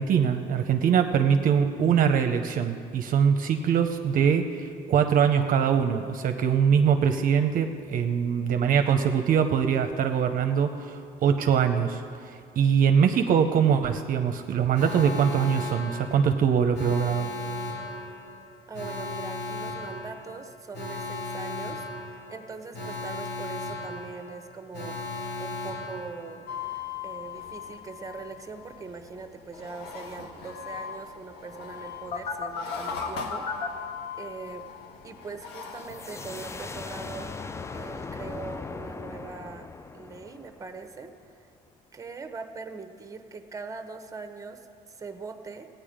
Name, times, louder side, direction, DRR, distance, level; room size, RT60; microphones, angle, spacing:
voice 1, 0.0-12.0 12.6-17.3, right 7 dB, 55° right, 7 dB, 0.7 m, -23 dB
Alarm, 14.7-26.7 32.1-33.7, left 3 dB, 75° left, 1.7 m, -36 dB
voice 2, 18.7-25.0 25.4-26.4 27.0-33.5 34.2-34.7 35.0-37.5 37.7-41.1 41.9-45.7, right 4 dB, 20° right, 6 dB, 0.9 m, -41 dB
sound 1, 26.5-38.6, left 7 dB, 90° left, 1.2 m, -41 dB
sound 2, 35.8-41.3, left 4 dB, 15° left, 0.4 m, -39 dB
16.0 x 9.2 x 5.1 m, 2.4 s
cardioid pair, 110°, 17 cm